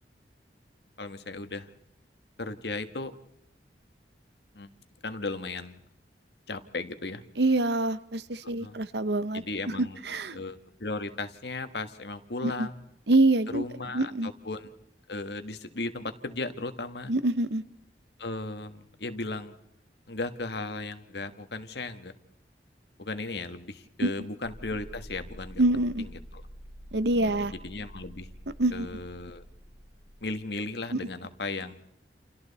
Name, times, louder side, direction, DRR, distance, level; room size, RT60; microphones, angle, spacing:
voice 1, 1.0-1.7 2.4-3.1 4.5-4.7 5.0-5.8 6.5-7.2 8.4-8.8 9.3-10.0 10.3-12.7 13.5-14.7 15.1-17.1 18.2-19.5 20.1-22.1 23.0-25.6 26.0-26.1 27.2-28.3 28.7-29.4 30.2-31.8, left 2 dB, 70° left, 8 dB, 1.6 m, -36 dB
voice 2, 7.4-10.4 12.4-12.7 13.1-13.6 13.9-14.3 17.1-17.6 24.0-24.1 25.6-26.1 26.9-27.5 28.6-28.9 30.9-31.0, right 2 dB, 75° right, 14 dB, 0.9 m, -26 dB
sound 1, 24.4-30.6, equal, 5° left, 7.8 m, -47 dB
30.0 x 28.0 x 4.2 m, 0.73 s
head